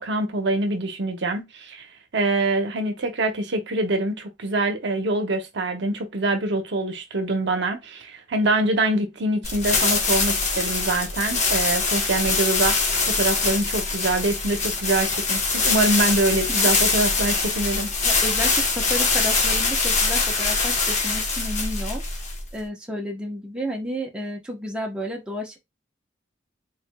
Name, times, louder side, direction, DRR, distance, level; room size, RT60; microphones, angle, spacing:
voice 1, 0.0-1.9 2.1-12.9 13.2-17.9, right 2 dB, 65° right, 0.7 m, -24 dB
sound 1, 9.4-22.6, left 4 dB, 40° left, 1.0 m, -23 dB
voice 2, 18.0-22.0 22.5-25.6, equal, 5° right, 0.8 m, -31 dB
3.8 x 3.1 x 2.2 m
head